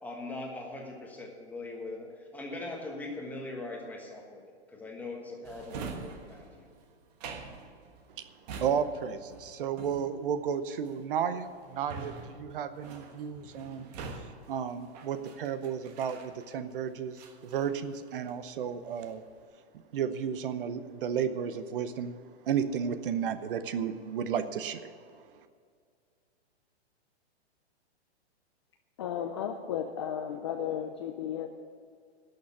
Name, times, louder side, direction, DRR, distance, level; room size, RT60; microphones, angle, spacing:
voice 1, 0.0-4.4 4.7-6.7, left 2 dB, 5° left, 0 dB, 1.3 m, -41 dB
Drawer open or close, 5.4-16.7 17.1-18.4 18.8-19.3, right 4 dB, 35° right, 1.3 m, -45 dB
voice 2, 8.6-13.9 14.5-19.2 19.7-25.4, right 7 dB, 55° right, 12 dB, 0.8 m, -33 dB
voice 3, 29.0-31.5, left 9 dB, 25° left, 6 dB, 0.4 m, -34 dB
11.5 x 6.6 x 9.6 m, 2.1 s
hypercardioid pair, 160°, 33 cm